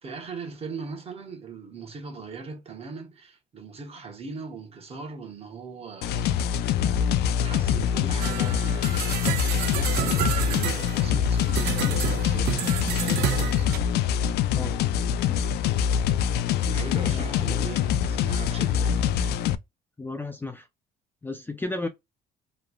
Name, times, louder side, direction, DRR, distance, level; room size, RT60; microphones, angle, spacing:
voice 1, 0.0-6.5 7.4-9.1 9.4-13.7 16.6-19.0, right 4 dB, 35° right, 1.1 m, -39 dB
sound 1, 6.0-19.5, left 8 dB, 75° left, 0.4 m, -24 dB
sound 2, 8.2-13.8, right 11 dB, 70° right, 0.5 m, -30 dB
voice 2, 14.6-14.9 15.3-15.4 17.1-17.3 20.0-20.7 21.2-21.9, left 2 dB, 10° left, 0.5 m, -34 dB
3.1 x 2.3 x 2.3 m
cardioid pair, 110°, 17 cm